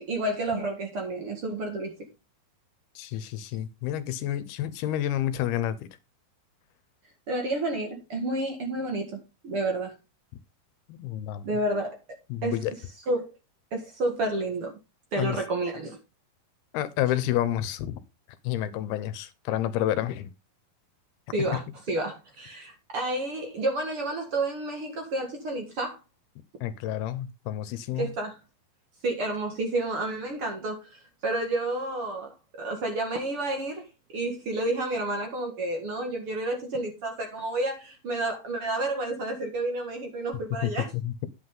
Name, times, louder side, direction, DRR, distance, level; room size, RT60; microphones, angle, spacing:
voice 1, 0.0-2.1 7.3-9.9 11.4-12.0 12.4-12.6 13.1-13.3 13.7-14.7 15.1-16.0 21.3-21.6 21.9-26.0 28.0-28.4 29.0-33.9 34.1-40.9, right 2 dB, 45° right, 2.2 m, -30 dB
voice 2, 3.0-5.8 10.9-11.4 12.3-12.7 15.2-15.4 16.7-18.0 18.4-20.3 21.5-21.6 26.6-28.1 40.6-41.3, left 12 dB, 85° left, 2.8 m, -29 dB
9.9 x 8.4 x 3.8 m
omnidirectional pair, 4.4 m